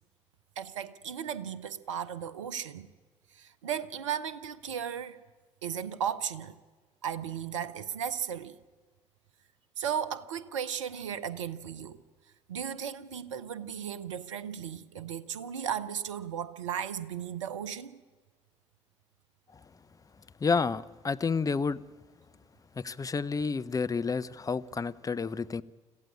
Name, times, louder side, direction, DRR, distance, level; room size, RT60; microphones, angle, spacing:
voice 1, 0.6-2.9 3.3-5.2 5.6-6.6 7.0-8.6 9.8-12.0 12.5-18.0, right 8 dB, 75° right, 0.7 m, -35 dB
voice 2, 20.4-21.8 22.8-25.6, left 5 dB, 20° left, 0.7 m, -30 dB
26.0 x 15.0 x 8.6 m
figure-of-eight pair, 50°, 16 cm